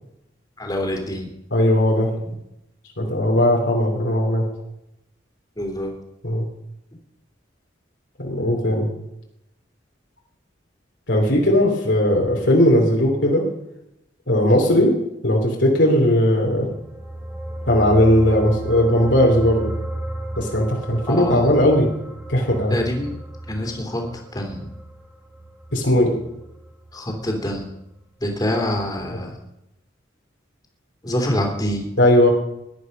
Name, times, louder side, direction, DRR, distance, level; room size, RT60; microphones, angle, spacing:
voice 1, 0.6-1.3 2.2-2.4 5.6-5.9 21.1-21.5 22.7-23.1 23.5-24.0 24.3-24.7 26.9-27.7 28.2-29.4 31.0-31.9, left 1 dB, 20° left, 2 dB, 3.0 m, -25 dB
voice 2, 1.5-2.1 3.0-4.4 6.2-6.5 8.2-8.9 11.1-13.4 14.3-14.9 15.2-16.7 17.7-19.7 20.4-21.9 22.3-22.8 25.7-26.1 32.0-32.3, left 1 dB, 70° left, -1 dB, 3.2 m, -18 dB
sound 1, 16.7-27.3 27.6-27.8, right 1 dB, 10° right, 2.1 m, -34 dB
18.0 x 11.5 x 5.4 m, 0.84 s
head